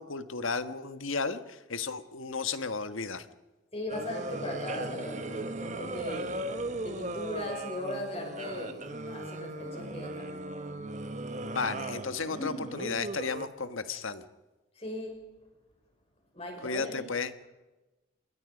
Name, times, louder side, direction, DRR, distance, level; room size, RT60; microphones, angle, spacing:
voice 1, 0.0-3.3 11.4-14.2 16.6-17.3, left 4 dB, 90° left, 11 dB, 1.5 m, -34 dB
voice 2, 3.7-6.4 6.8-10.3 12.3-12.7 14.7-15.2 16.3-17.1, left 1 dB, 30° left, 2 dB, 6.3 m, -38 dB
sound 1, 3.9-13.5, right 2 dB, 35° right, 1.3 m, -37 dB
27.0 x 21.5 x 5.2 m, 1.1 s
head